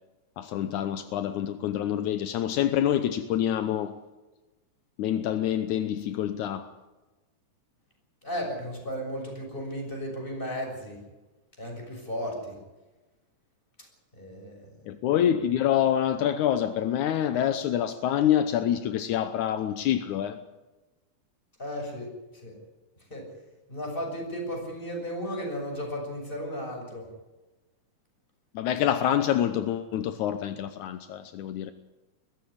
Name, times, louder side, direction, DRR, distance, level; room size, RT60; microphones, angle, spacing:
voice 1, 0.4-4.0 5.0-6.7 14.9-20.4 28.5-31.7, left 10 dB, 80° left, 2.3 m, -26 dB
voice 2, 8.2-11.0 11.6-12.6 14.2-14.7 21.6-22.6 23.1-23.3 23.7-27.1, equal, 15° left, 6.6 m, -35 dB
21.5 x 15.5 x 9.7 m
omnidirectional pair, 3.6 m